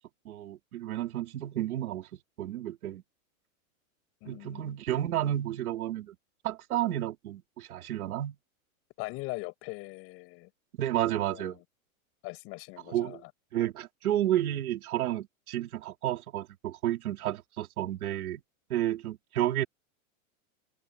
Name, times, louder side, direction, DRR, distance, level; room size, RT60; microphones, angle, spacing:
voice 1, 0.3-2.1 2.4-3.0 4.3-6.2 6.4-8.4 10.8-11.6 12.9-13.2 13.5-18.4 18.7-19.6, right 12 dB, 80° right, 3.7 m, -31 dB
voice 2, 4.2-4.8 9.0-10.5 11.0-11.6 12.2-13.2, left 24 dB, 30° left, 7.5 m, -41 dB
open air
supercardioid pair, 175°, 43 cm